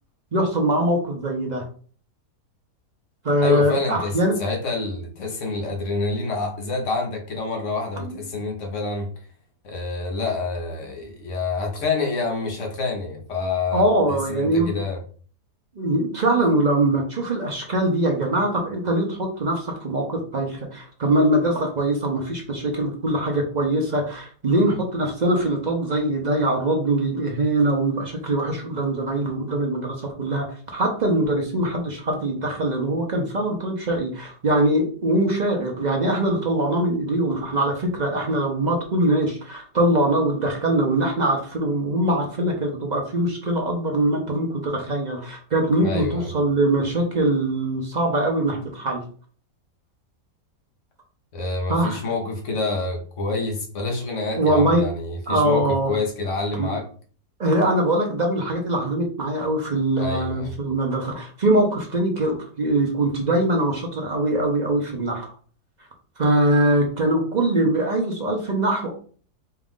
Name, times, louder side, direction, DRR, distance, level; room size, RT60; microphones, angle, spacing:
voice 1, 0.3-1.6 3.2-4.3 8.0-8.2 13.7-14.8 15.8-49.0 51.7-52.0 54.4-54.8 55.3-56.0 56.6-56.7 57.4-65.3 66.2-68.9, right 1 dB, 50° right, 0.5 m, -22 dB
voice 2, 3.4-9.1 9.6-15.0 45.8-46.3 51.3-56.9 60.0-60.5, left 3 dB, 55° left, 1.2 m, -27 dB
4.4 x 2.4 x 3.6 m
omnidirectional pair, 1.8 m